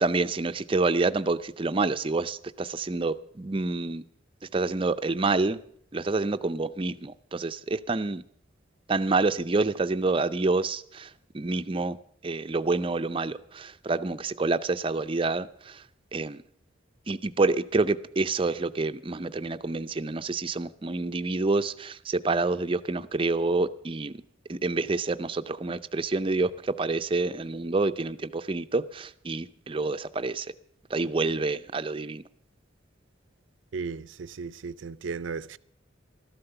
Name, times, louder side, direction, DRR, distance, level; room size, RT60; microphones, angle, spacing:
voice 1, 0.0-4.0 4.5-5.6 5.9-8.2 8.9-11.1 11.3-12.0 12.2-15.8 16.1-16.4 17.1-24.2 24.5-30.5 30.9-32.2, right 3 dB, 25° right, 0.5 m, -27 dB
voice 2, 33.7-35.6, right 5 dB, 75° right, 0.5 m, -35 dB
13.5 x 11.5 x 6.7 m
head